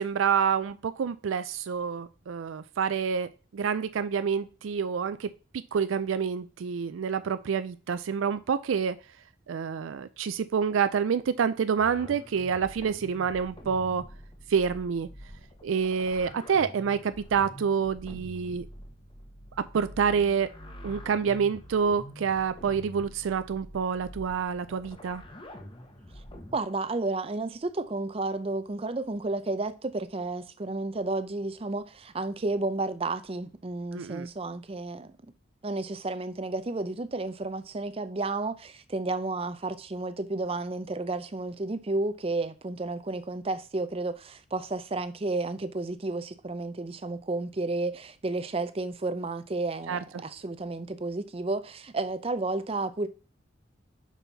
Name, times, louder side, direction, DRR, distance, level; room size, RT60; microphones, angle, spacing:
voice 1, 0.0-5.3 5.7-9.0 9.5-14.0 14.5-15.1 15.6-18.6 19.6-20.5 20.8-25.2 33.9-34.3 49.9-50.0, right 6 dB, 85° right, 0.4 m, -27 dB
sound 1, 11.8-26.6, equal, 25° left, 1.0 m, -46 dB
voice 2, 26.5-35.1 35.6-53.1, right 2 dB, 30° right, 0.5 m, -32 dB
6.1 x 5.6 x 4.0 m
head